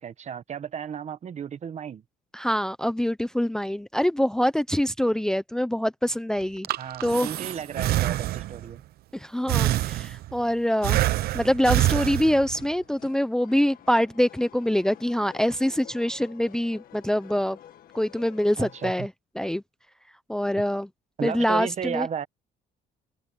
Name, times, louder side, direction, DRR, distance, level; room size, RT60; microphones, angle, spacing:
voice 1, 0.0-2.0 6.8-8.8 18.6-19.1 21.2-22.3, right 8 dB, 45° right, 1.4 m, -34 dB
voice 2, 2.3-6.7 7.0-7.3 9.1-11.0 11.3-17.6 17.9-19.1 19.4-19.6 20.3-20.9 21.2-22.1, equal, 5° left, 0.7 m, -25 dB
Breathing, 6.4-8.7 9.5-10.4 10.8-12.7, right 15 dB, 65° right, 0.7 m, -26 dB
sound 1, 11.5-18.9, left 10 dB, 60° left, 1.8 m, -50 dB
open air
cardioid pair, 110°, 17 cm